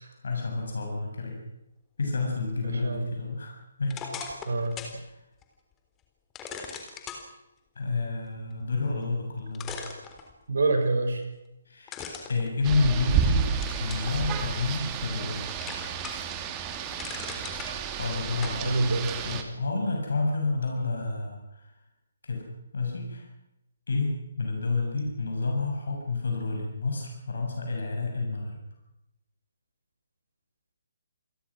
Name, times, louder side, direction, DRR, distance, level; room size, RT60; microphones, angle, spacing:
voice 1, 0.0-1.4 2.0-3.5 3.8-4.2 5.1-5.2 7.8-9.8 11.7-12.0 12.3-13.5 13.8-15.5 17.9-19.0 19.2-21.7 22.2-22.4 22.7-23.3 23.9-28.6, left 3 dB, 60° left, 1 dB, 7.0 m, -29 dB
voice 2, 2.6-3.1 4.5-4.8 10.5-11.2 18.6-19.2, right 3 dB, 60° right, 6 dB, 5.9 m, -26 dB
sound 1, 3.9-5.0 5.4-5.5 6.3-7.2 9.0-9.1 9.5-10.6 11.9-13.2 13.6-14.1 14.6-15.3 15.6-16.3 16.7-17.7 18.4-18.6, left 6 dB, 15° left, 3.7 m, -39 dB
Rain, 12.6-19.4, right 7 dB, 20° right, 2.4 m, -31 dB
28.5 x 21.5 x 6.2 m, 0.91 s
figure-of-eight pair, 135°, 0 cm